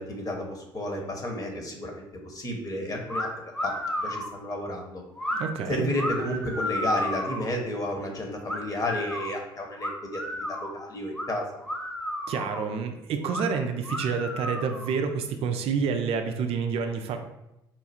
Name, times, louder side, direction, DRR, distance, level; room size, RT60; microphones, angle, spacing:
voice 1, 0.0-5.0 5.7-11.6, left 1 dB, 30° left, 2 dB, 1.1 m, -32 dB
sound 1, 3.1-3.3 3.5-4.3 5.2-5.4 5.9-7.5 8.5-9.3 9.8-10.7 11.1-11.3 11.6-12.7 13.2-13.5 13.8-15.0, equal, 5° left, 0.9 m, -32 dB
voice 2, 5.4-5.9 12.3-17.2, right 6 dB, 55° right, 6 dB, 0.5 m, -28 dB
4.4 x 2.3 x 4.3 m, 0.89 s
hypercardioid pair, 55°, 12 cm